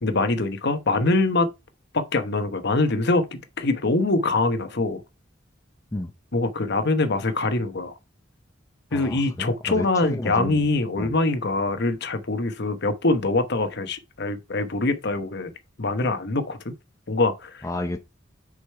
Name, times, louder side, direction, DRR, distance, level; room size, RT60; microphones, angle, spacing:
voice 1, 0.0-1.5 1.9-5.0 6.3-7.9 8.9-15.5 15.8-16.7 17.1-17.7, left 2 dB, 60° left, 1.0 m, -24 dB
voice 2, 8.9-10.6 11.0-11.1 17.6-18.0, left 1 dB, 15° left, 0.6 m, -31 dB
6.6 x 5.1 x 4.5 m
head